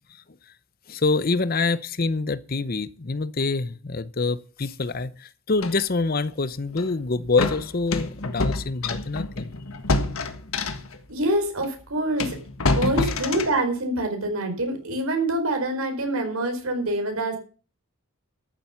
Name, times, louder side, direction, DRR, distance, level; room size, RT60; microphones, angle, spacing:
voice 1, 0.9-9.5 13.0-13.1, left 3 dB, 45° left, 0.7 m, -26 dB
sound 1, 5.6-5.8 6.7-6.9 7.4-11.0 11.6-11.7 12.2-13.6, left 2 dB, 80° left, 1.6 m, -27 dB
voice 2, 11.1-12.4 12.6-17.4, right 1 dB, 90° right, 4.7 m, -25 dB
13.5 x 7.6 x 7.0 m
head